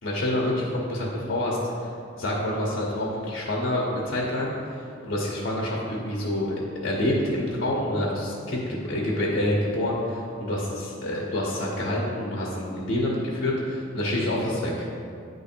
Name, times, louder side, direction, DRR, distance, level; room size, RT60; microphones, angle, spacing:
voice 1, 0.0-14.8, left 1 dB, 55° left, -4 dB, 1.0 m, -27 dB
9.4 x 3.2 x 4.5 m, 2.4 s
head